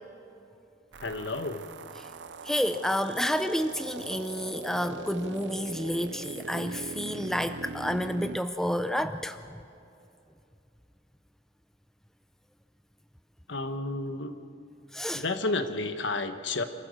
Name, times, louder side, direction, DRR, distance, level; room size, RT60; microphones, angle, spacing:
sound 1, 0.9-8.4, right 4 dB, 65° right, 0.5 m, -41 dB
voice 1, 1.0-1.7 13.5-14.3 15.1-16.6, left 2 dB, 70° left, 8 dB, 1.2 m, -31 dB
voice 2, 2.4-9.4 14.9-15.2, equal, ahead, 9 dB, 0.4 m, -30 dB
26.5 x 15.0 x 6.6 m, 2.7 s
head